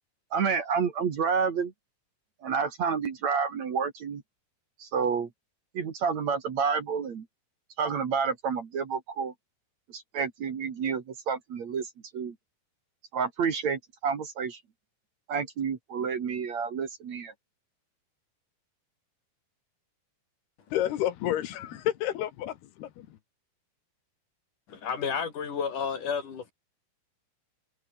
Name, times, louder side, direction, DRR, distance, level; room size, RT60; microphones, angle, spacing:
voice 1, 0.3-1.7 2.4-4.2 4.8-5.3 5.7-7.3 7.8-9.3 9.9-12.3 13.1-14.6 15.3-17.3, right 6 dB, 50° right, 3.0 m, -29 dB
voice 2, 20.7-23.2, left 12 dB, 80° left, 3.6 m, -30 dB
voice 3, 24.7-26.5, left 6 dB, 55° left, 4.7 m, -31 dB
omnidirectional pair, 4.5 m